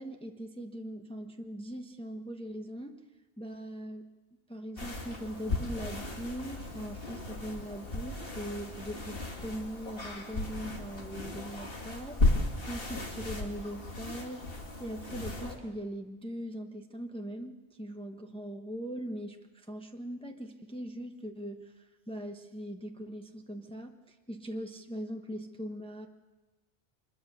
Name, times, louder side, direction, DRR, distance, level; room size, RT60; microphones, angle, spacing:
voice 1, 0.0-3.0 3.4-4.1 4.5-26.1, equal, 5° left, 4 dB, 1.1 m, -41 dB
sound 1, 4.8-15.6, left 2 dB, 55° left, 2.6 m, -35 dB
24.0 x 21.5 x 6.8 m, 1.2 s
omnidirectional pair, 1.1 m